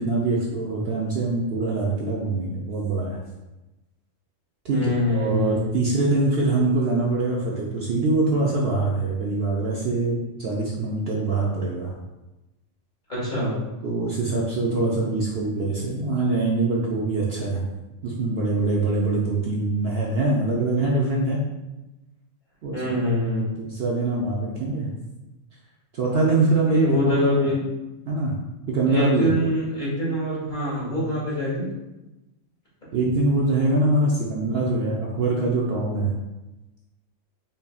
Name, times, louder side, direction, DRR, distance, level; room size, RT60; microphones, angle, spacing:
voice 1, 0.0-3.2 4.6-4.8 5.1-11.9 13.8-17.6 18.0-21.4 22.6-22.8 23.6-24.9 25.9-27.5 28.1-28.3 28.7-29.3 32.9-36.1, right 2 dB, 60° right, -3 dB, 0.7 m, -24 dB
voice 2, 4.7-5.7 13.1-13.6 22.7-23.5 26.6-27.7 28.9-31.7, equal, 40° left, -9 dB, 1.8 m, -24 dB
5.4 x 2.7 x 2.3 m, 1.0 s
omnidirectional pair, 1.3 m